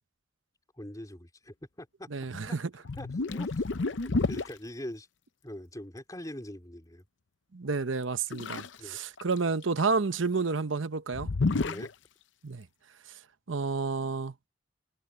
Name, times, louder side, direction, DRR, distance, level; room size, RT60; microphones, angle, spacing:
voice 1, 0.8-2.1 2.4-2.6 2.9-3.6 3.9-5.1 5.4-7.0 8.8-9.0 11.6-11.9, left 1 dB, 20° left, 3.6 m, -42 dB
voice 2, 2.1-2.7 7.5-11.3 12.4-12.7 13.5-14.3, right 4 dB, 70° right, 0.9 m, -30 dB
sound 1, 2.3-2.5 2.8-4.5 8.3-8.8 9.2-9.8 11.1-11.9, left 3 dB, 65° left, 0.7 m, -30 dB
head